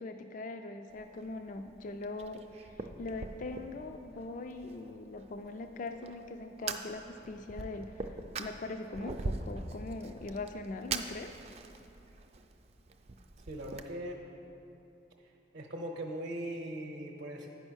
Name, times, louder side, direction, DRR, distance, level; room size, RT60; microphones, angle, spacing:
voice 1, 0.0-11.3, left 2 dB, 45° left, 7 dB, 0.3 m, -41 dB
Fire, 0.9-13.8, right 3 dB, 35° right, 0.4 m, -43 dB
voice 2, 13.5-14.2 15.5-17.5, right 1 dB, 70° right, 0 dB, 0.7 m, -39 dB
8.9 x 5.4 x 6.2 m, 2.9 s
head